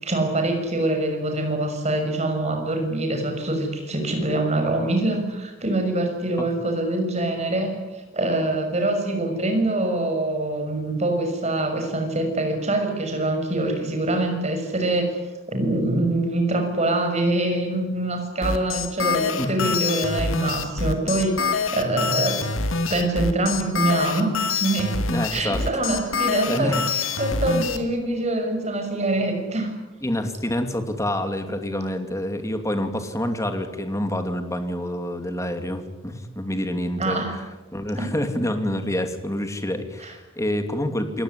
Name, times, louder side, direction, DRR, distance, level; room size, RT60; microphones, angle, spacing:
voice 1, 0.0-7.7 8.1-15.1 15.5-21.5 21.7-22.4 22.9-25.0 25.3-29.7 37.0-37.4 38.0-38.1 40.0-40.1, right 2 dB, 35° right, 4 dB, 6.3 m, -24 dB
sound 1, 18.4-27.8, left 4 dB, 85° left, 2.5 m, -25 dB
voice 2, 25.1-25.6 26.5-26.9 30.0-37.2 37.7-41.2, left 1 dB, 15° left, 7 dB, 2.7 m, -27 dB
28.0 x 18.0 x 9.9 m, 1.1 s
head